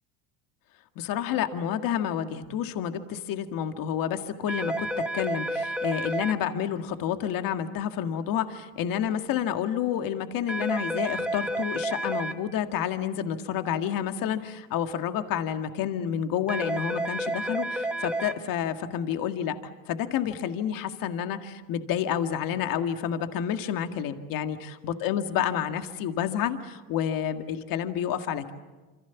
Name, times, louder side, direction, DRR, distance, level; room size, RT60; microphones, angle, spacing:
voice 1, 1.0-19.6 19.9-28.5, left 9 dB, 55° left, 7 dB, 2.0 m, -29 dB
sound 1, 4.5-6.3 10.5-12.3 16.5-18.3, right 1 dB, 5° right, 1.8 m, -30 dB
27.5 x 26.5 x 7.1 m, 1.2 s
supercardioid pair, 115°, 40 cm